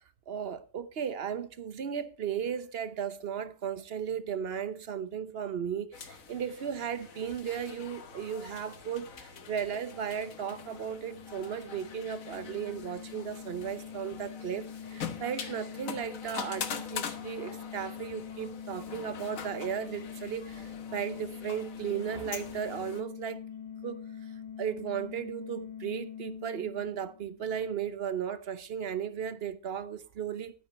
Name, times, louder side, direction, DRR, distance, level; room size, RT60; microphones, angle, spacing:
voice 1, 0.3-23.4 23.8-24.1 24.6-30.5, right 8 dB, 55° right, 0.7 m, -35 dB
sound 1, 5.9-23.0, left 7 dB, 55° left, 1.4 m, -44 dB
sound 2, 10.0-27.5, left 8 dB, 85° left, 2.3 m, -44 dB
11.0 x 9.2 x 4.2 m
omnidirectional pair, 1.9 m